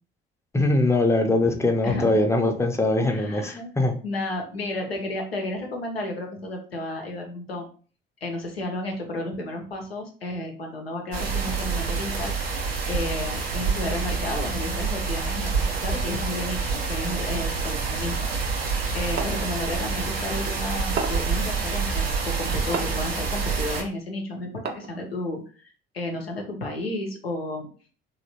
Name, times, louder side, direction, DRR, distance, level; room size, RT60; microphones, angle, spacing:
voice 1, 0.5-4.0, left 2 dB, 10° left, 4 dB, 0.6 m, -22 dB
voice 2, 1.8-2.1 3.1-3.7 4.0-7.7 8.2-18.3 18.6-27.7, left 1 dB, 90° left, 2 dB, 0.6 m, -32 dB
sound 1, 11.1-23.8, right 4 dB, 85° right, 0.6 m, -27 dB
sound 2, 19.2-19.5 21.0-21.4 22.7-23.1 24.7-25.1, right 5 dB, 35° right, 0.5 m, -31 dB
2.9 x 2.8 x 2.8 m, 0.40 s
figure-of-eight pair, 50°, 29 cm